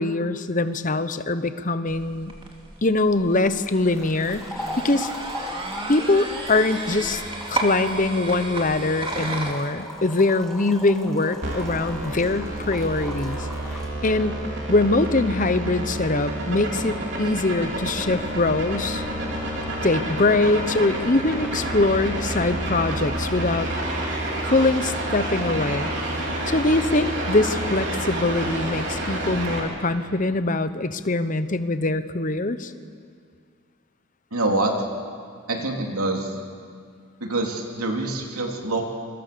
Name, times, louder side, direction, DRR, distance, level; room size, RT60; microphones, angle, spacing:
voice 1, 0.0-2.3 2.8-4.4 4.8-5.1 5.9-7.2 7.5-13.5 14.0-14.4 14.7-19.0 19.8-23.7 24.4-25.9 26.5-32.7, left 2 dB, 35° left, 11 dB, 0.9 m, -23 dB
sound 1, 1.9-9.5, right 2 dB, 25° right, 2.6 m, -33 dB
sound 2, 3.5-13.9, left 1 dB, ahead, 2.9 m, -39 dB
sound 3, 11.4-29.6, right 1 dB, 55° right, 4.6 m, -29 dB
voice 2, 34.3-34.7 35.5-36.3 37.2-38.8, right 2 dB, 85° right, 1 dB, 3.2 m, -25 dB
27.5 x 24.0 x 6.9 m, 2.2 s
head